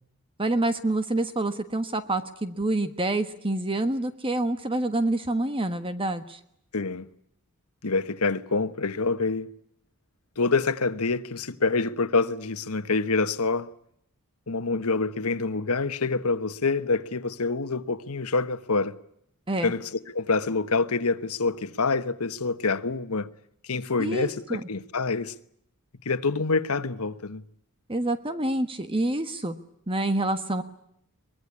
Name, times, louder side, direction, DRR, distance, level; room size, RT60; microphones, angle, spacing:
voice 1, 0.4-6.4 19.5-19.7 24.0-24.6 27.9-29.5 29.9-30.6, right 2 dB, 25° right, 1.4 m, -27 dB
voice 2, 6.7-7.1 7.8-9.5 10.4-13.7 14.5-19.0 19.6-23.3 23.6-25.3 26.0-27.4, left 3 dB, 85° left, 1.3 m, -26 dB
24.0 x 21.0 x 9.8 m
head